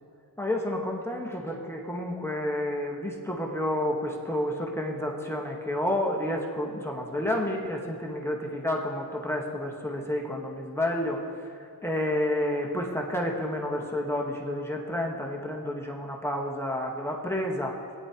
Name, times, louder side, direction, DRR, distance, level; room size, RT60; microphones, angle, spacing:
voice 1, 0.4-17.8, left 1 dB, 5° left, -1 dB, 1.2 m, -30 dB
17.5 x 9.7 x 2.9 m, 2.5 s
wide cardioid pair, 85°, 36 cm